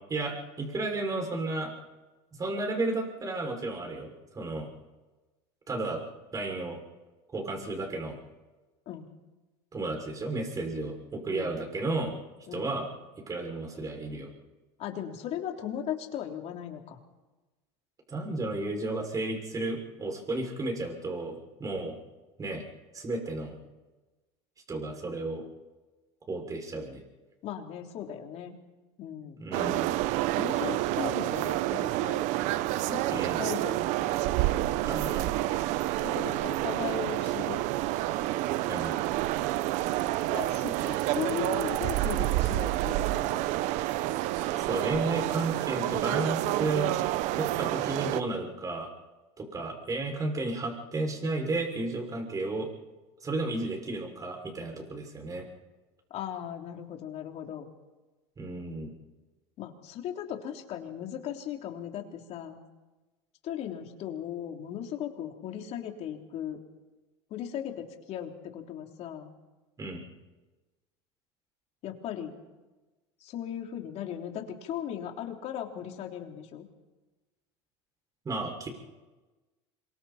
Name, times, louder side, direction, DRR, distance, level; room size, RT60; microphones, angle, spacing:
voice 1, 0.1-1.7 2.4-4.7 5.7-6.0 6.3-6.8 7.3-8.2 9.7-12.2 12.5-12.9 13.3-14.3 18.1-21.9 22.4-22.6 22.9-23.5 24.7-25.4 26.3-27.0 29.4-29.9 33.1-33.4 34.8-35.3 38.7-39.0 44.6-46.9 47.4-48.9 49.4-52.7 53.2-55.5 58.4-58.9 69.8-70.1 78.2-78.7, right 2 dB, 25° right, 2 dB, 6.2 m, -33 dB
voice 2, 14.8-17.0 27.4-28.6 29.0-29.8 30.3-32.3 32.9-33.9 36.0-37.6 40.3-43.4 56.1-57.7 59.6-62.6 63.4-66.6 67.3-69.3 71.8-72.4 73.2-76.7, left 10 dB, 50° left, 2 dB, 3.4 m, -37 dB
sound 1, 29.5-48.2, right 16 dB, 60° right, 1.0 m, -29 dB
27.0 x 23.5 x 4.4 m, 1.2 s
supercardioid pair, 100°, 14 cm